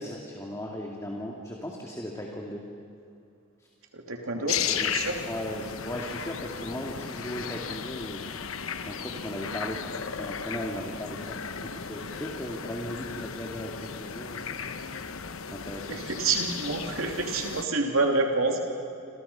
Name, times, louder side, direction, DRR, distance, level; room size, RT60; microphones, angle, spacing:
voice 1, 0.0-2.7 4.3-9.8 10.2-11.4 11.6-14.5 15.5-16.0, left 1 dB, 15° left, -1 dB, 2.1 m, -37 dB
voice 2, 3.9-5.2 15.9-18.6, right 3 dB, 90° right, 2 dB, 3.0 m, -28 dB
sound 1, 4.5-17.6, left 7 dB, 85° left, 1.1 m, -35 dB
29.5 x 27.0 x 5.7 m, 2.5 s
head